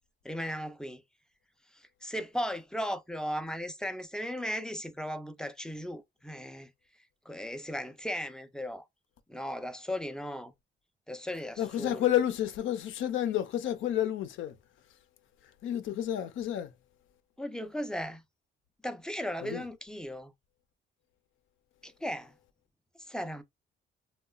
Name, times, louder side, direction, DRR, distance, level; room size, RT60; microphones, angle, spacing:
voice 1, 0.2-1.0 1.7-6.7 7.3-8.8 9.3-10.5 11.1-12.0 17.4-18.2 18.8-20.3 21.8-22.3 23.1-23.4, equal, 5° left, 0.4 m, -36 dB
voice 2, 11.6-14.6 14.9-15.0 15.4-16.7 19.4-19.6, left 11 dB, 80° left, 0.5 m, -30 dB
2.9 x 2.2 x 2.3 m
cardioid pair, 90°, 20 cm